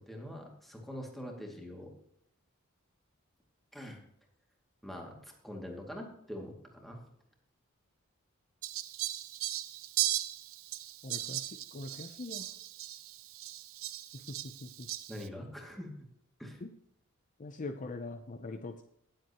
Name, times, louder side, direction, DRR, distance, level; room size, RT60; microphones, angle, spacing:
voice 1, 0.0-1.9 3.7-4.0 4.8-7.0 15.1-15.9 16.4-16.6, equal, ahead, 0 dB, 2.3 m, -44 dB
Fowl, 8.6-15.3, right 14 dB, 70° right, 0.7 m, -38 dB
voice 2, 11.0-12.5 14.4-14.9 16.6-16.7 17.4-18.8, left 2 dB, 35° left, 7 dB, 0.6 m, -42 dB
18.5 x 7.8 x 3.0 m, 0.75 s
head